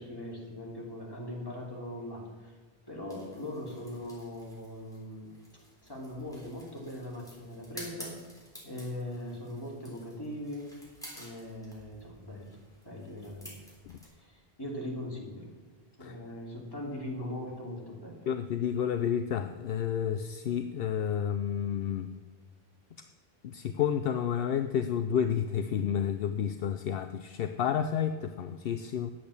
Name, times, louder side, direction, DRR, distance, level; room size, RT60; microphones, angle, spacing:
voice 1, 0.0-2.6 2.9-5.3 5.8-8.2 8.6-10.7 11.1-12.6 12.8-13.5 14.2-15.5 16.0-18.2, left 1 dB, 20° left, -3 dB, 2.9 m, -40 dB
sound 1, 3.1-14.1, equal, 5° left, 3.7 m, -52 dB
voice 2, 18.3-22.1 23.4-29.1, left 8 dB, 70° left, 8 dB, 0.8 m, -30 dB
10.0 x 8.6 x 7.0 m, 1.4 s
omnidirectional pair, 1.0 m